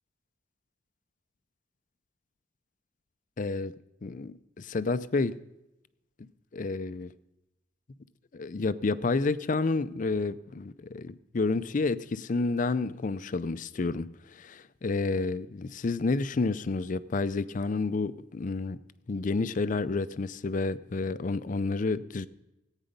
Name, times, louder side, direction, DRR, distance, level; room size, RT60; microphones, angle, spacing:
voice 1, 3.4-3.7 4.0-5.4 6.5-7.1 8.3-18.8 19.1-22.3, left 3 dB, 45° left, 15 dB, 0.5 m, -30 dB
15.5 x 9.0 x 5.2 m, 0.91 s
head